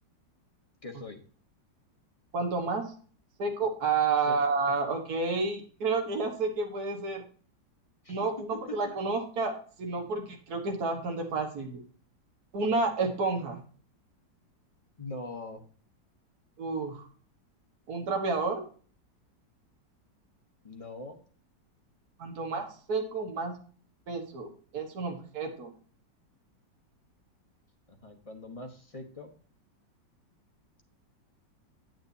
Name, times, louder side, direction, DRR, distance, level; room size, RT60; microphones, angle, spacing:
voice 1, 0.8-1.2 4.3-4.4 8.0-8.3 15.0-15.6 20.6-21.2 27.9-29.3, left 2 dB, 30° left, 3 dB, 0.6 m, -42 dB
voice 2, 2.3-2.9 3.4-7.2 8.1-11.8 12.5-13.6 16.6-17.1 17.9-18.6 22.2-23.5 24.1-25.7, right 4 dB, 55° right, 3 dB, 1.9 m, -30 dB
9.0 x 8.7 x 2.7 m, 0.42 s
omnidirectional pair, 2.0 m